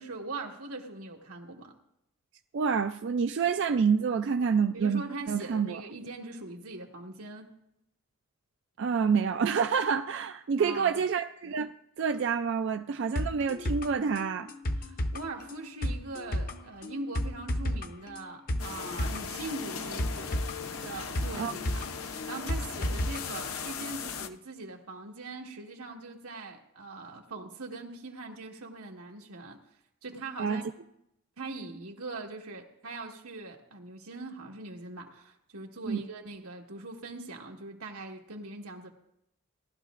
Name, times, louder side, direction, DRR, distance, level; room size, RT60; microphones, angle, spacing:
voice 1, 0.0-1.7 4.7-7.5 10.6-11.0 14.8-20.5 20.8-29.6 30.0-30.6 31.4-38.9, right 2 dB, 85° right, 1.6 m, -41 dB
voice 2, 2.5-5.0 5.3-5.8 8.8-14.5 21.4-21.5 30.4-30.7 35.9-36.0, right 6 dB, 55° right, 0.3 m, -28 dB
sound 1, 13.2-23.2 23.5-23.6, left 1 dB, 40° left, 0.6 m, -33 dB
sound 2, 18.6-24.3, left 6 dB, 75° left, 0.7 m, -38 dB
18.5 x 12.0 x 2.5 m
head